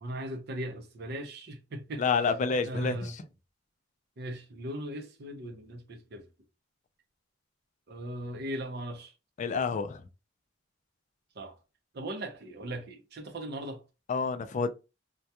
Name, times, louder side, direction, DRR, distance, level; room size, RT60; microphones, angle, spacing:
voice 1, 0.0-2.0 2.7-3.2 4.2-6.2 7.9-9.1 11.4-11.6 11.9-13.8, right 1 dB, 60° right, 0.6 m, -38 dB
voice 2, 2.0-3.1 9.4-10.0 14.1-14.7, left 5 dB, 40° left, 0.3 m, -28 dB
2.2 x 2.2 x 2.8 m
head